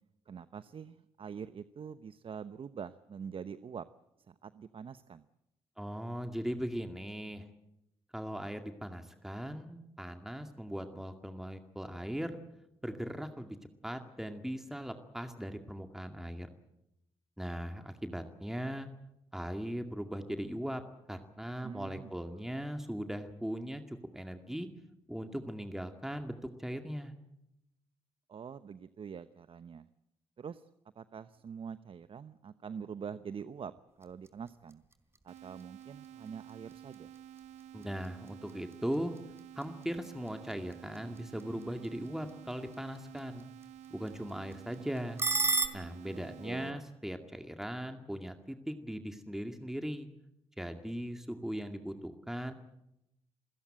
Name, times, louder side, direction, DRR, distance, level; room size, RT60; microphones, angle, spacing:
voice 1, 0.3-3.9 4.3-5.3 21.6-22.5 28.3-29.9 30.4-30.7 30.9-34.8 35.2-37.1 46.1-46.8, right 7 dB, 50° right, 14 dB, 0.9 m, -45 dB
voice 2, 5.8-7.4 8.1-12.4 12.8-13.6 13.8-16.5 17.4-18.9 19.3-20.8 21.1-24.7 25.1-27.1 37.7-39.1 39.6-43.5 43.9-45.2 45.7-50.1 50.6-52.5, equal, 5° right, 6 dB, 2.1 m, -39 dB
sound 1, 33.9-45.7, right 4 dB, 20° right, 3.7 m, -40 dB
sound 2, 35.3-46.7, right 10 dB, 85° right, 0.9 m, -51 dB
28.5 x 16.5 x 8.9 m, 0.85 s
supercardioid pair, 60°, 12 cm